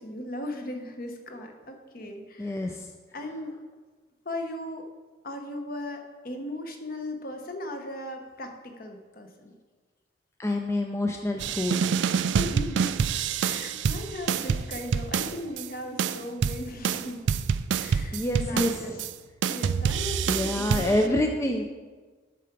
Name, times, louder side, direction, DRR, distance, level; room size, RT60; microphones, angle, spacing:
voice 1, 0.0-2.7 3.1-3.6 4.2-4.9 5.2-9.5 12.3-13.0 13.4-17.3 17.8-19.0 19.4-21.6, left 1 dB, 50° left, 4 dB, 1.0 m, -37 dB
voice 2, 2.4-2.8 10.4-11.8 18.1-18.8 20.3-21.6, left 1 dB, 15° left, 3 dB, 0.4 m, -27 dB
sound 1, 11.4-15.7 16.0-19.1 19.4-21.1, right 6 dB, 70° right, 0.3 m, -27 dB
8.4 x 4.7 x 6.0 m, 1.4 s
head